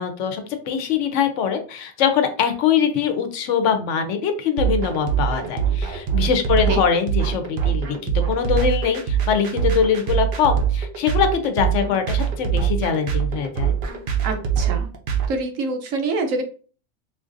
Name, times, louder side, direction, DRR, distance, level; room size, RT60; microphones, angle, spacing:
voice 1, 0.0-8.0 8.3-13.7, left 7 dB, 75° left, 7 dB, 0.9 m, -22 dB
sound 1, 4.6-15.3, right 8 dB, 55° right, 0.6 m, -23 dB
voice 2, 14.2-14.9 15.3-16.4, right 3 dB, 90° right, 6 dB, 1.1 m, -25 dB
3.9 x 2.5 x 2.5 m, 0.38 s
omnidirectional pair, 1.3 m